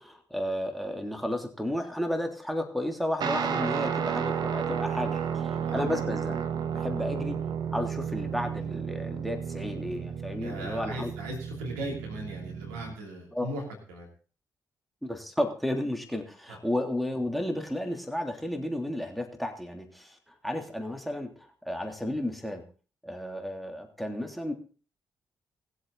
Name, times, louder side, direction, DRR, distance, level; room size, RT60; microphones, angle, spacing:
voice 1, 0.0-6.4 6.7-7.4 7.7-11.1 13.3-13.5 15.0-22.6 23.0-24.5, left 1 dB, ahead, 3 dB, 3.2 m, -33 dB
Guitar, 3.2-12.9, right 7 dB, 65° right, 1.3 m, -32 dB
voice 2, 10.4-13.6 13.9-14.1 16.5-16.6, right 1 dB, 85° right, 0 dB, 3.1 m, -38 dB
19.5 x 8.1 x 4.0 m, 0.37 s
hypercardioid pair, 40°, 8 cm